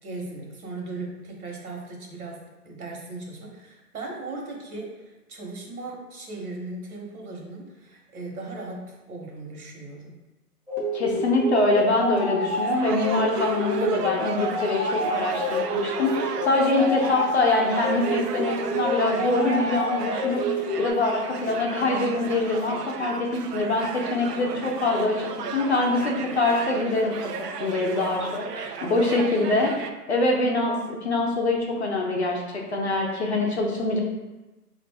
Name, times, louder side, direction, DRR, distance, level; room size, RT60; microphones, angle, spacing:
voice 1, 0.0-10.2 28.8-29.1, right 2 dB, 65° right, -1 dB, 1.2 m, -38 dB
sound 1, 10.7-20.9, equal, 10° left, 0.7 m, -29 dB
voice 2, 10.9-20.4 20.8-27.1 27.6-34.0, left 2 dB, 45° left, 0 dB, 0.6 m, -24 dB
sound 2, 12.4-29.9, right 6 dB, 80° right, 0.6 m, -35 dB
4.9 x 2.5 x 3.4 m, 1.1 s
hypercardioid pair, 170°, 47 cm